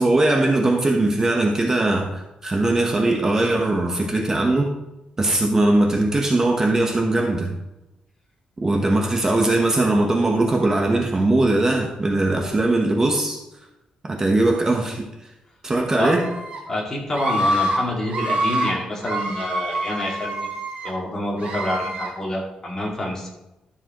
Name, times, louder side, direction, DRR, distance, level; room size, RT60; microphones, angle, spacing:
voice 1, 0.0-4.7 5.2-7.5 8.6-13.4 14.0-15.1 15.6-16.3, right 2 dB, 25° right, 1 dB, 1.0 m, -20 dB
Screaming, 16.0-16.6 17.1-17.8 18.1-18.7 19.0-20.9 21.4-22.1, right 1 dB, 65° right, 2.8 m, -26 dB
voice 2, 16.7-20.3 20.8-23.3, left 1 dB, 25° left, -2 dB, 2.2 m, -27 dB
12.5 x 7.0 x 3.0 m, 0.95 s
wide cardioid pair, 140°, 2 cm